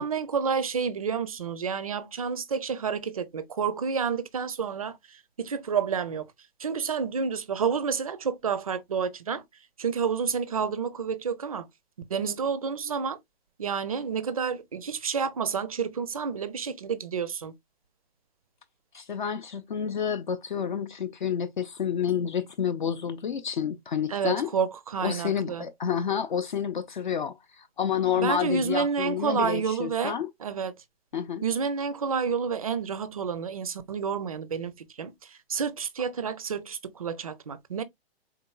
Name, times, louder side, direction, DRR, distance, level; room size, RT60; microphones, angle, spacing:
voice 1, 0.0-6.3 6.6-9.4 9.8-11.7 12.1-13.2 13.6-17.5 24.1-25.6 28.2-30.7 31.4-37.8, right 6 dB, 35° right, 0.4 m, -29 dB
voice 2, 18.9-24.5 25.0-30.3 31.1-31.5, left 8 dB, 50° left, 0.5 m, -29 dB
4.2 x 3.8 x 2.2 m
hypercardioid pair, 170°, 32 cm